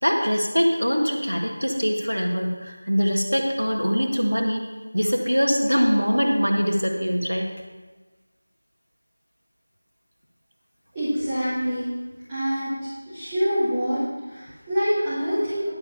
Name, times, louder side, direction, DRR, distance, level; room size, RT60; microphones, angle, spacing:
voice 1, 0.0-4.6 4.9-7.5, equal, 90° left, 2 dB, 1.7 m, -23 dB
voice 2, 10.9-11.9 12.3-12.7 13.1-14.0 14.3-15.7, equal, 15° right, -15 dB, 2.6 m, -25 dB
11.5 x 5.1 x 6.8 m, 1.3 s
figure-of-eight pair, 170°, 0 cm